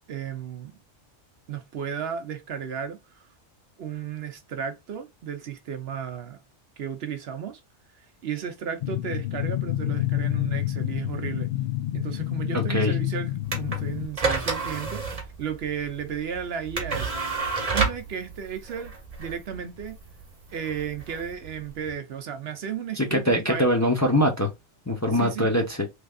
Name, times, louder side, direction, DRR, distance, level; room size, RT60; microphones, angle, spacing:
voice 1, 0.1-0.8 1.5-3.3 3.8-6.4 6.8-7.6 8.0-11.5 11.9-13.3 13.6-17.1 17.7-20.0 20.5-23.7 25.1-25.5, right 8 dB, 65° right, 0.8 m, -34 dB
sound 1, 8.8-14.1, left 15 dB, 60° left, 0.7 m, -28 dB
voice 2, 12.5-12.9 23.0-24.5 24.9-25.9, equal, 20° left, 0.6 m, -23 dB
sound 2, 13.4-21.9, right 4 dB, 35° right, 1.1 m, -31 dB
3.3 x 3.3 x 2.3 m
omnidirectional pair, 1.2 m